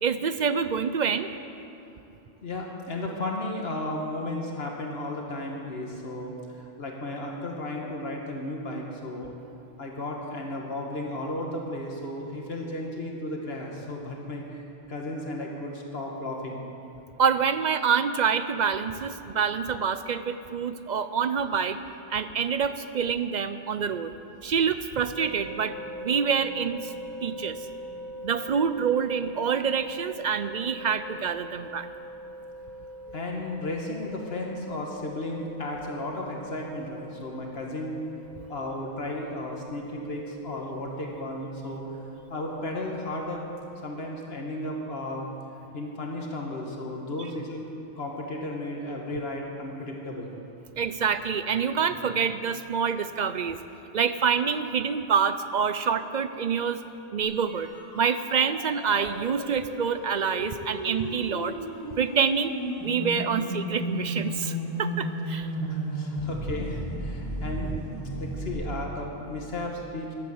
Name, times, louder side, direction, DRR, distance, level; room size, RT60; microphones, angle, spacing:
voice 1, 0.0-1.3 17.2-21.8 22.1-24.1 24.4-26.9 27.2-27.6 28.2-31.9 50.8-53.6 53.9-56.8 57.1-57.7 57.9-61.5 62.0-62.5 62.8-65.5, right 6 dB, 55° right, 11 dB, 0.6 m, -26 dB
voice 2, 2.4-9.3 9.8-16.7 33.1-38.0 38.5-43.4 43.8-45.3 45.7-47.7 48.0-50.4 65.5-67.8 68.1-70.1, left 1 dB, 75° left, 0 dB, 1.7 m, -34 dB
sound 1, 25.2-43.6, equal, ahead, 2.8 m, -43 dB
sound 2, 57.2-68.5, equal, 25° left, 3.3 m, -34 dB
13.0 x 11.5 x 7.8 m, 2.9 s
omnidirectional pair, 1.0 m